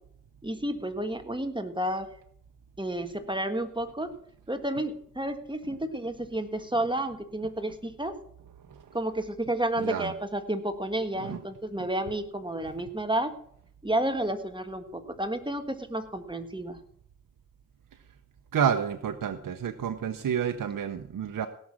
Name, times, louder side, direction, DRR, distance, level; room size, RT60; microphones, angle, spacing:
voice 1, 0.4-2.1 2.8-4.1 4.5-8.2 8.9-13.3 13.8-16.8, right 1 dB, 15° right, 8 dB, 1.5 m, -31 dB
voice 2, 9.8-10.1 11.2-11.4 18.5-21.5, right 8 dB, 80° right, 7 dB, 0.8 m, -30 dB
17.5 x 6.3 x 6.2 m, 0.64 s
cardioid pair, 50°, 32 cm